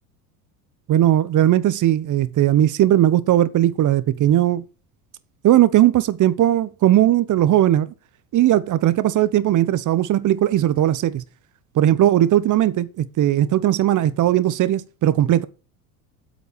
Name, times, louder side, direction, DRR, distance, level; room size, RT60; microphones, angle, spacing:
voice 1, 0.9-4.6 5.4-7.9 8.3-11.2 11.7-15.5, right 12 dB, 40° right, 1.0 m, -18 dB
8.4 x 7.6 x 5.2 m
hypercardioid pair, 80°, 46 cm